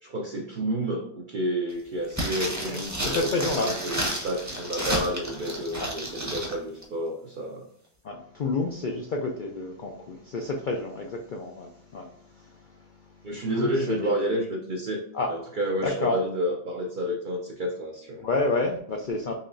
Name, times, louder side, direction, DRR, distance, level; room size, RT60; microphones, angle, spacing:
voice 1, 0.0-3.3 3.6-7.6 13.2-18.2, right 1 dB, 60° right, 0 dB, 0.5 m, -30 dB
sound 1, 2.1-6.6 6.8-6.9, equal, 15° right, 0.6 m, -31 dB
voice 2, 3.0-3.7 5.8-5.9 8.0-14.4 15.1-15.3 15.8-16.2 18.2-19.3, left 3 dB, 90° left, 2 dB, 0.4 m, -30 dB
4.1 x 2.9 x 2.6 m, 0.69 s
omnidirectional pair, 1.5 m